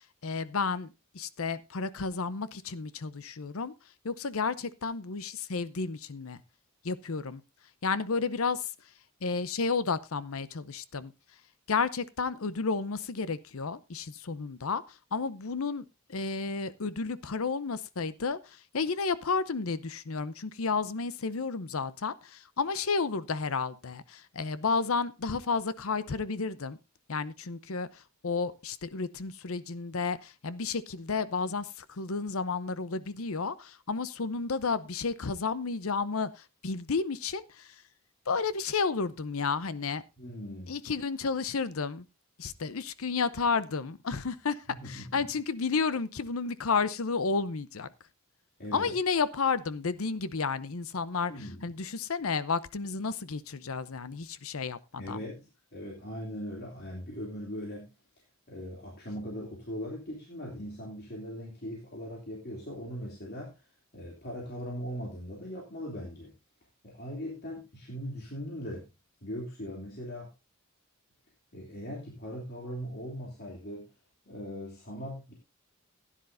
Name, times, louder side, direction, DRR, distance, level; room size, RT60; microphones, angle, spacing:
voice 1, 0.2-3.7 4.0-6.4 6.8-7.4 7.8-8.7 9.2-11.1 11.7-14.8 15.1-26.8 27.1-37.7 38.3-40.0 40.7-42.0 42.4-47.9 48.7-51.3 51.6-55.2, left 4 dB, 70° left, 16 dB, 0.7 m, -32 dB
voice 2, 40.2-40.7 44.7-45.2 48.6-48.9 51.3-51.7 55.0-57.9 58.5-63.6 63.9-66.3 66.8-68.9 69.2-70.3 71.5-73.9 74.3-75.3, equal, 45° left, -3 dB, 2.9 m, -40 dB
16.0 x 10.0 x 2.6 m, 0.25 s
head